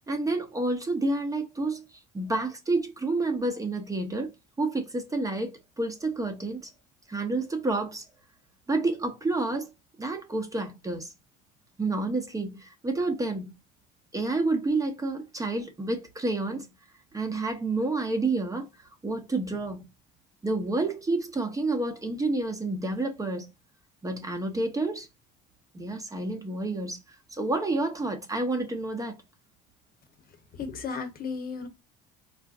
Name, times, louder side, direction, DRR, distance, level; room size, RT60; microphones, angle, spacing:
voice 1, 0.1-1.8 2.1-4.3 4.6-5.5 5.8-6.7 7.1-8.0 8.7-9.7 10.0-11.1 11.8-13.5 14.1-16.7 17.1-18.7 19.0-19.8 20.4-23.5 24.0-25.1 25.7-27.0 27.3-29.2, right 2 dB, 15° right, 0.7 m, -29 dB
voice 2, 30.5-31.7, left 5 dB, 50° left, 0.9 m, -34 dB
3.6 x 2.4 x 2.4 m
supercardioid pair, 100°, 20 cm